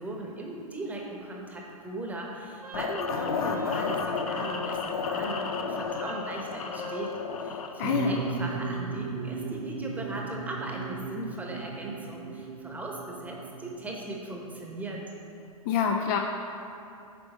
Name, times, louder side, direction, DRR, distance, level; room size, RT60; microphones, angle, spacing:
voice 1, 0.0-7.1 7.4-15.0, right 1 dB, 10° right, -1 dB, 1.0 m, -38 dB
Wind instrument woodwind instrument, 2.6-7.2, left 2 dB, 85° right, 1.0 m, -43 dB
sound 1, 2.7-8.7, left 5 dB, 70° left, 0.7 m, -33 dB
voice 2, 7.8-8.1 15.7-16.2, left 7 dB, 35° left, 3 dB, 0.4 m, -26 dB
sound 2, 7.8-15.1, right 5 dB, 65° right, 0.6 m, -37 dB
9.2 x 3.4 x 5.4 m, 2.6 s
hypercardioid pair, 120°, 19 cm